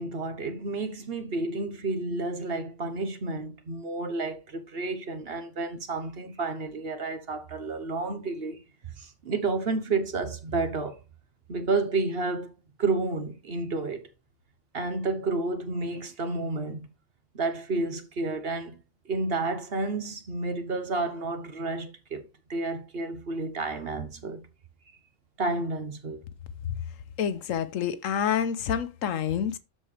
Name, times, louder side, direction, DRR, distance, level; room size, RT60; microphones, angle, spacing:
voice 1, 0.0-8.6 9.0-11.0 11.5-12.5 12.8-14.1 14.7-16.9 17.3-18.8 19.1-24.5 25.4-26.2, right 3 dB, 50° right, 1.3 m, -31 dB
voice 2, 27.2-29.6, left 8 dB, 85° left, 1.2 m, -28 dB
13.0 x 4.5 x 3.3 m
omnidirectional pair, 1.3 m